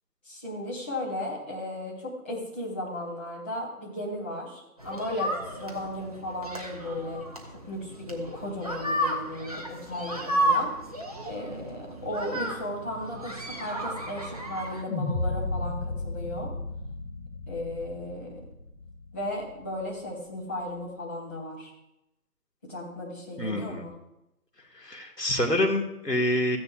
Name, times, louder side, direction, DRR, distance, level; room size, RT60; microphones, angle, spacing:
voice 1, 0.2-7.2 7.5-10.7 11.3-16.5 17.5-18.4 19.1-21.7 22.6-23.9, left 1 dB, 10° left, -9 dB, 0.9 m, -35 dB
sound 1, 4.8-14.8, right 1 dB, 25° right, 0.7 m, -33 dB
sound 2, 14.9-19.2, left 2 dB, 30° left, 1.4 m, -33 dB
voice 2, 23.4-23.9 24.7-26.6, left 1 dB, 85° left, 2 dB, 2.1 m, -27 dB
14.5 x 9.7 x 2.5 m, 0.89 s
figure-of-eight pair, 150°, 47 cm